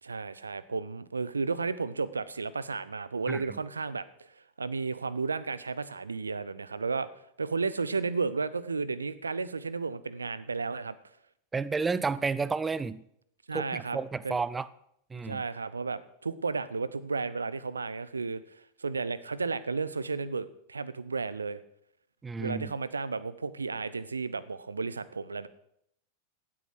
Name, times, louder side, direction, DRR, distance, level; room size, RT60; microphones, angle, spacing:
voice 1, 0.0-4.1 4.6-7.1 7.4-10.9 13.5-14.0 14.2-14.4 15.2-18.4 18.8-21.6 22.4-25.5, right 4 dB, 75° right, 17 dB, 0.7 m, -33 dB
voice 2, 3.3-3.6 11.5-13.0 13.5-14.7 15.1-15.4 22.2-22.7, right 4 dB, 15° right, 18 dB, 0.6 m, -31 dB
15.5 x 8.7 x 6.0 m, 0.73 s
figure-of-eight pair, 90°, 0 cm